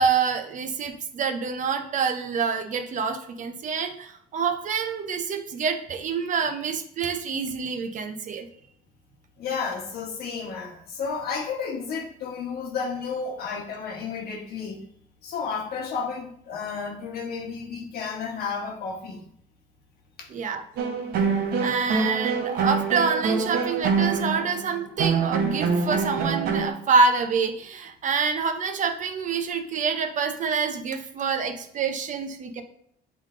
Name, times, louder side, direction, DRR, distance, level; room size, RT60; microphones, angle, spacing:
voice 1, 0.0-8.5 20.3-20.6 21.6-32.6, right 5 dB, 50° right, 7 dB, 0.8 m, -26 dB
voice 2, 9.4-14.8 15.2-19.2 20.2-20.3, left 5 dB, 70° left, 3 dB, 1.3 m, -32 dB
sound 1, 20.8-26.7, right 5 dB, 70° right, 1.0 m, -25 dB
8.1 x 3.8 x 3.7 m, 0.67 s
cardioid pair, 110°, 17 cm